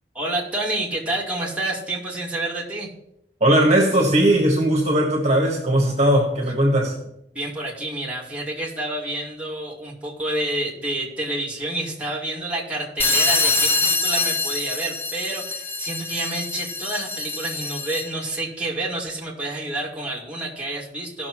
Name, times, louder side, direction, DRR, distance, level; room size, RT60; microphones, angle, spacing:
voice 1, 0.1-2.9 7.3-21.3, right 1 dB, 10° right, -5 dB, 2.3 m, -29 dB
voice 2, 3.4-7.0, right 1 dB, 40° right, 0 dB, 1.5 m, -18 dB
sound 1, 13.0-18.2, left 3 dB, 10° left, 0.5 m, -24 dB
17.0 x 6.2 x 3.1 m, 0.79 s
head